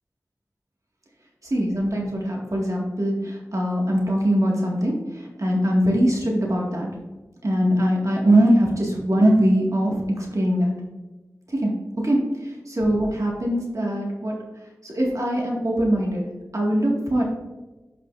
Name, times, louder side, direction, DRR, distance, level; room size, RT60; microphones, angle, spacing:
voice 1, 1.5-6.9 7.4-10.7 11.5-11.7 12.0-14.4 14.8-16.2 16.5-17.2, equal, 60° right, -2 dB, 1.9 m, -22 dB
11.0 x 5.8 x 2.6 m, 1.1 s
wide cardioid pair, 60°, 6 cm